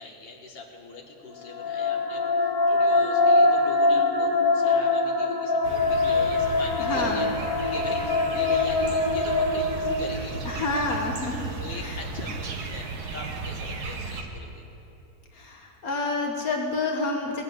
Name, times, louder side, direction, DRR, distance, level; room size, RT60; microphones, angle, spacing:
voice 1, 0.0-10.8 11.6-14.6, left 2 dB, 40° left, 0 dB, 1.7 m, -40 dB
sound 1, 1.4-10.6, left 3 dB, 25° left, 0.5 m, -23 dB
sound 2, 5.6-14.2, right 4 dB, 85° right, 1.7 m, -35 dB
voice 2, 6.8-7.3 10.4-11.5 11.8-12.0 15.3-17.4, left 3 dB, 70° left, 1 dB, 1.7 m, -28 dB
19.0 x 8.1 x 7.8 m, 2.9 s
omnidirectional pair, 1.6 m